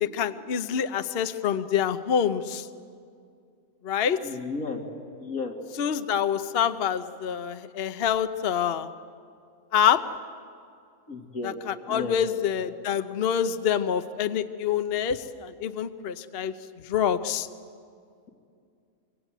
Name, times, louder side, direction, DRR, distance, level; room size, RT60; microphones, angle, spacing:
voice 1, 0.0-2.7 3.8-4.2 5.8-8.9 9.7-10.0 11.4-16.5 16.9-17.5, left 8 dB, 50° left, 10 dB, 0.9 m, -26 dB
voice 2, 4.2-4.8 5.2-5.5 11.1-11.5 11.9-12.2, left 4 dB, 85° left, 1 dB, 3.1 m, -33 dB
24.5 x 24.5 x 9.0 m, 2.3 s
omnidirectional pair, 1.5 m